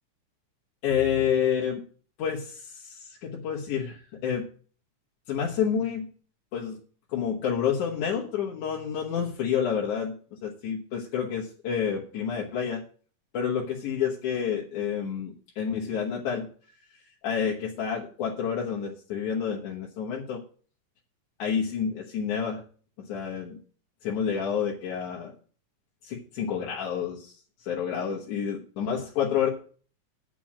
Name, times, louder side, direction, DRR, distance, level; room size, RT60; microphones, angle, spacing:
voice 1, 0.8-1.8 2.2-4.5 5.3-6.1 6.5-6.8 7.1-12.8 13.3-16.5 17.2-20.4 21.4-22.6 23.0-23.6 24.0-25.3 26.0-27.3 27.6-29.5, left 7 dB, 70° left, -2 dB, 2.7 m, -29 dB
9.2 x 6.1 x 7.3 m, 0.41 s
omnidirectional pair, 3.6 m